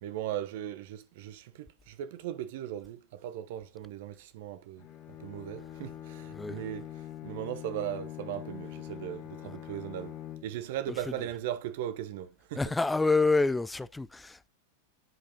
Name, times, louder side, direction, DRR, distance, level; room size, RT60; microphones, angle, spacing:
voice 1, 0.0-4.9 5.2-12.6, right 11 dB, 50° right, 0.8 m, -38 dB
Bowed string instrument, 4.8-10.8, left 12 dB, 40° left, 1.0 m, -44 dB
voice 2, 12.6-14.5, left 3 dB, 5° left, 0.4 m, -27 dB
11.0 x 4.9 x 2.6 m
figure-of-eight pair, 90°, 0 cm